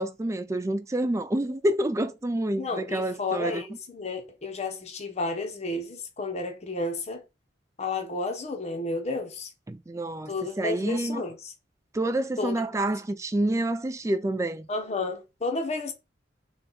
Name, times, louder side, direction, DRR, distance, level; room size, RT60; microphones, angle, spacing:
voice 1, 0.0-3.6 9.7-11.2 11.9-14.7, right 1 dB, 15° right, 0.3 m, -28 dB
voice 2, 2.6-7.2 7.8-9.5 10.3-11.5 12.4-12.6 14.7-15.9, left 3 dB, 35° left, 0.7 m, -32 dB
3.8 x 2.3 x 4.0 m
head